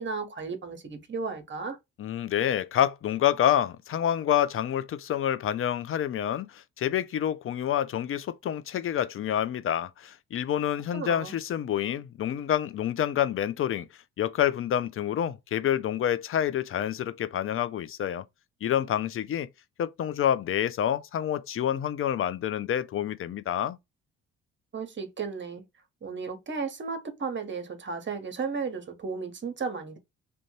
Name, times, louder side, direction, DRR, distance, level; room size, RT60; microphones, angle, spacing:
voice 1, 0.0-1.8 10.9-11.3 24.7-25.6 26.0-30.0, right 5 dB, 30° right, 0.9 m, -34 dB
voice 2, 2.0-13.9 14.2-18.2 18.6-19.5 19.8-23.8, left 10 dB, 35° left, 0.5 m, -28 dB
2.5 x 2.2 x 3.0 m
hypercardioid pair, 45°, 37 cm